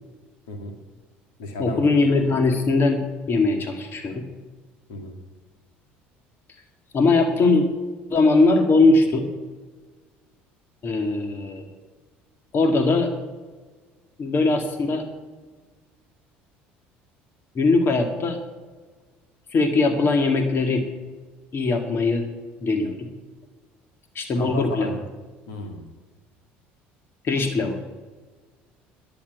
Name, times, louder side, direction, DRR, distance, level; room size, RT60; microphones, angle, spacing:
voice 1, 0.5-0.8 1.4-1.8 4.9-5.2 24.3-25.0 25.5-25.9, left 2 dB, 80° left, 3 dB, 2.4 m, -34 dB
voice 2, 1.6-3.0 3.3-4.2 6.9-7.7 8.1-9.3 10.8-11.7 12.5-13.1 14.2-15.1 17.6-18.4 19.5-20.9 21.5-22.3 22.6-23.1 24.2-24.9 27.2-27.8, left 3 dB, 45° left, 5 dB, 1.9 m, -20 dB
11.0 x 8.8 x 9.2 m, 1.3 s
hypercardioid pair, 75°, 5 cm